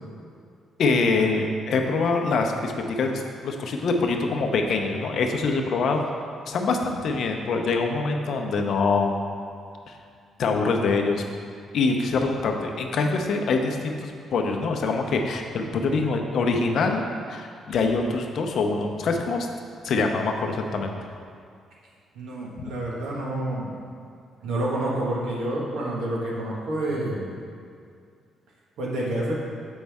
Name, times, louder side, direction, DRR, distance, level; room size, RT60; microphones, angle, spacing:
voice 1, 0.8-6.0 6.5-9.2 9.9-10.0 10.4-11.2 11.7-19.5 19.8-20.9, left 4 dB, 65° left, 3 dB, 0.7 m, -24 dB
voice 2, 22.1-23.7 24.4-27.3 28.8-29.3, right 1 dB, 85° right, -4 dB, 1.5 m, -28 dB
7.1 x 5.3 x 3.5 m, 2.3 s
cardioid pair, 90°, 0 cm